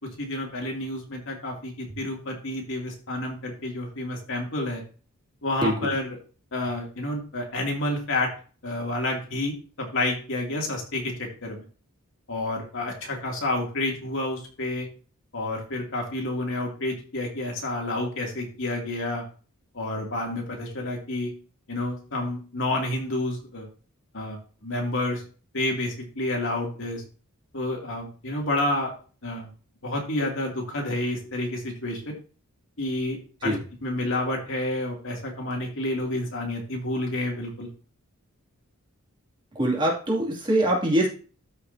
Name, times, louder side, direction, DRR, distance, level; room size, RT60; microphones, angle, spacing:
voice 1, 0.0-4.8 5.4-6.2 6.5-8.3 8.6-11.6 12.3-14.9 15.3-19.2 19.7-21.3 21.7-23.7 24.1-25.2 25.5-27.0 27.5-28.9 29.2-29.5 29.8-32.2 32.8-33.6 33.8-37.7, left 1 dB, 60° left, 0 dB, 2.6 m, -29 dB
voice 2, 39.5-41.1, right 1 dB, 20° right, -2 dB, 2.5 m, -23 dB
13.0 x 5.7 x 2.7 m, 0.38 s
head